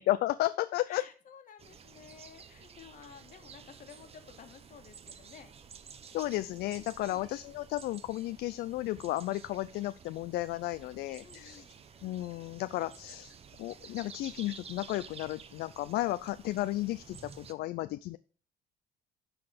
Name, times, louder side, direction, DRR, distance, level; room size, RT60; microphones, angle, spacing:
voice 1, 0.0-1.0 6.1-11.6 12.0-18.2, left 16 dB, 70° left, 13 dB, 0.4 m, -33 dB
voice 2, 0.8-5.5 11.2-11.7, left 7 dB, 50° left, 6 dB, 1.5 m, -53 dB
sound 1, 1.6-17.5, right 6 dB, 35° right, 0.8 m, -52 dB
11.5 x 4.1 x 5.1 m, 0.39 s
cardioid pair, 110°, 17 cm